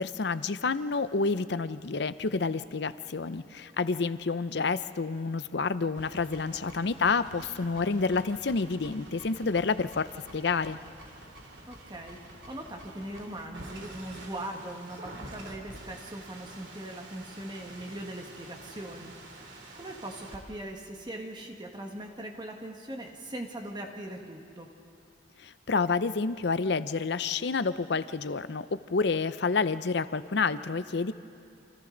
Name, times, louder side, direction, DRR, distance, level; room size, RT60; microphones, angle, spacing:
voice 1, 0.0-10.8 25.4-31.1, left 4 dB, 60° left, 14 dB, 0.6 m, -29 dB
sound 1, 5.9-20.4, right 1 dB, 65° right, 3.2 m, -48 dB
voice 2, 11.7-19.1 19.7-24.7, right 1 dB, 25° right, 1 dB, 1.6 m, -40 dB
28.0 x 27.5 x 3.9 m, 2.6 s
head